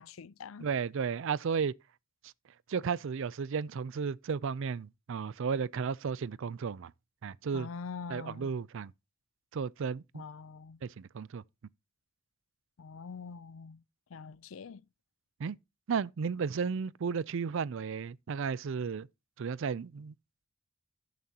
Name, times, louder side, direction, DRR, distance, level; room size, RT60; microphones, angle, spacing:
voice 1, 0.0-0.7 7.5-8.5 10.1-10.8 12.8-13.8 14.1-14.8, left 5 dB, 75° left, 0.5 m, -44 dB
voice 2, 0.6-1.7 2.7-6.9 7.2-7.7 8.1-8.9 9.5-10.2 10.8-11.4 15.4-15.6 15.9-19.1 19.4-20.1, right 6 dB, 65° right, 0.4 m, -34 dB
12.5 x 9.2 x 2.8 m
head